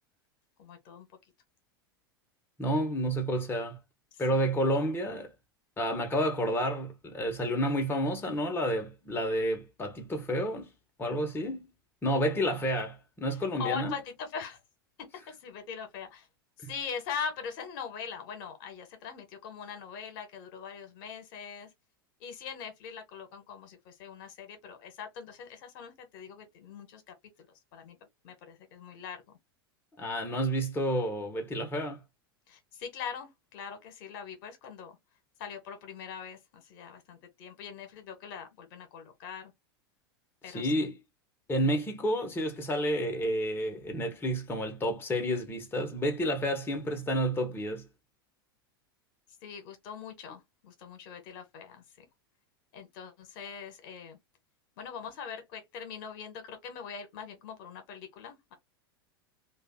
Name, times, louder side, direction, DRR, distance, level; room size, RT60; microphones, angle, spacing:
voice 1, 0.6-1.1 4.3-4.5 13.6-14.6 15.3-16.3 16.6-21.7 22.2-27.1 27.7-28.0 28.2-29.4 32.5-35.0 35.4-39.5 40.4-40.9 49.4-52.1 52.7-54.2 54.8-58.5, left 6 dB, 60° left, 1.5 m, -42 dB
voice 2, 2.6-3.8 4.2-5.3 5.8-10.7 11.0-11.7 12.0-13.9 16.6-16.7 30.0-32.0 40.5-41.0 41.5-47.8, equal, 15° left, 1.4 m, -30 dB
3.3 x 2.6 x 3.7 m
hypercardioid pair, 90°, 12 cm